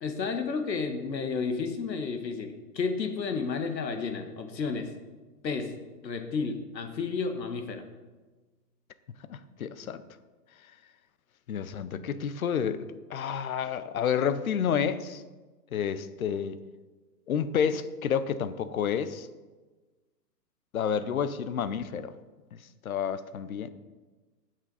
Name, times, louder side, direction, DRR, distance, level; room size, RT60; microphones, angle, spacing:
voice 1, 0.0-4.9 5.4-5.7 6.0-7.9, left 5 dB, 85° left, 6 dB, 1.7 m, -31 dB
voice 2, 9.3-10.0 11.5-12.8 13.1-15.2 15.7-16.6 17.3-19.3 20.7-22.1 22.8-23.7, left 7 dB, 55° left, 14 dB, 0.8 m, -29 dB
17.0 x 6.3 x 4.1 m, 1.3 s
hypercardioid pair, 165°, 50 cm